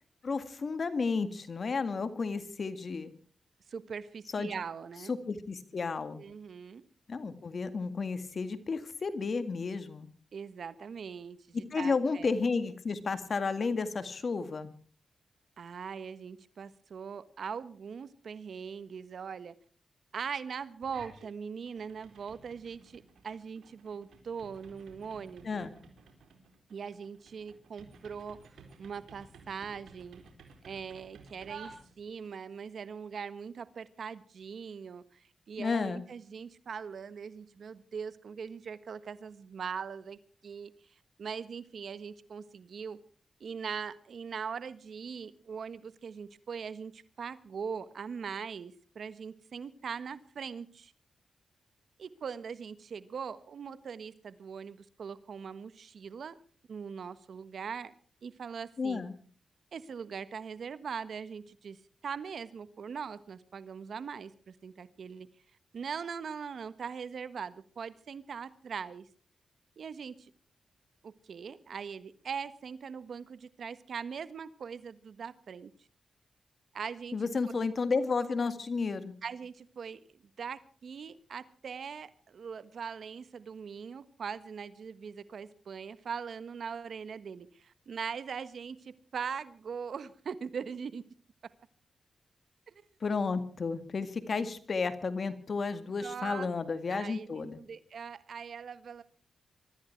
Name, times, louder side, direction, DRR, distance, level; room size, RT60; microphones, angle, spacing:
voice 1, 0.2-3.1 4.3-4.5 5.1-6.3 7.1-10.1 11.7-14.7 25.4-25.7 35.6-36.0 58.8-59.1 77.1-79.2 93.0-97.6, left 4 dB, 55° left, 11 dB, 2.0 m, -32 dB
voice 2, 3.7-5.1 6.2-6.8 10.3-12.3 15.6-19.6 20.1-25.6 26.7-28.4 28.8-30.2 30.6-40.7 41.2-43.0 43.4-50.9 52.0-56.4 56.7-57.9 58.2-59.0 59.7-65.3 65.7-69.1 69.8-70.3 71.0-75.7 76.7-77.2 79.2-91.0 92.7-92.9 96.0-96.5 96.9-99.0, right 6 dB, 70° right, 14 dB, 1.3 m, -41 dB
sound 1, 20.8-21.3 21.7-32.3, right 5 dB, 85° right, 3.9 m, -54 dB
23.5 x 13.5 x 4.6 m, 0.43 s
cardioid pair, 60°, 0 cm